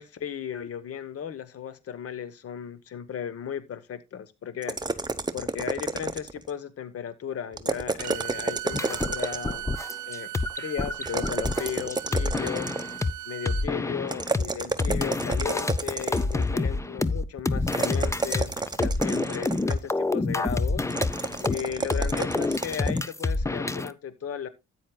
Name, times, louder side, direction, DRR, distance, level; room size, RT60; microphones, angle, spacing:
voice 1, 0.0-5.0 5.3-9.7 10.1-10.3 10.5-12.7 13.3-20.9 21.4-24.5, left 8 dB, 50° left, 1.1 m, -36 dB
sound 1, 4.6-6.5 7.5-9.6 11.1-13.0 14.1-16.5 17.7-19.9 20.9-23.1, right 3 dB, 15° right, 0.8 m, -31 dB
Bowed string instrument, 8.0-13.7, right 16 dB, 80° right, 0.5 m, -38 dB
sound 2, 8.7-13.1 13.5-14.4 14.8-23.9, left 3 dB, 10° left, 0.5 m, -28 dB
13.0 x 9.0 x 2.3 m
cardioid pair, 90°, 30 cm